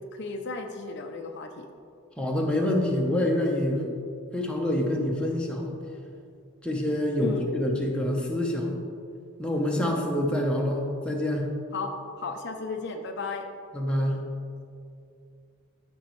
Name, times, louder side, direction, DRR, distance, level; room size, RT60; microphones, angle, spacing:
voice 1, 0.1-1.7 7.2-7.5 11.7-13.4, left 3 dB, 55° left, 4 dB, 0.6 m, -34 dB
voice 2, 2.2-3.9 4.3-5.7 6.6-8.8 9.4-11.5 13.7-14.2, left 1 dB, 5° left, -1 dB, 0.9 m, -26 dB
13.5 x 5.3 x 3.2 m, 2.4 s
head